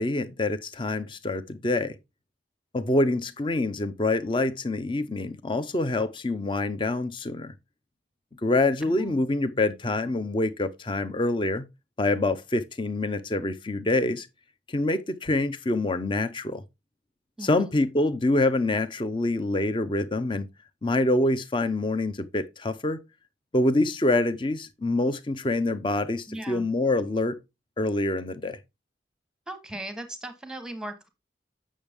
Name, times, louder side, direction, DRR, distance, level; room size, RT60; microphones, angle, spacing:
voice 1, 0.0-2.0 2.7-7.5 8.4-11.7 12.0-14.3 14.7-16.6 17.4-20.5 20.8-23.0 23.5-27.4 27.8-28.6, left 2 dB, 25° left, 0.6 m, -26 dB
voice 2, 8.9-9.2 17.4-17.7 26.3-26.7 29.5-31.1, right 1 dB, 5° right, 1.1 m, -38 dB
8.5 x 6.3 x 3.5 m
head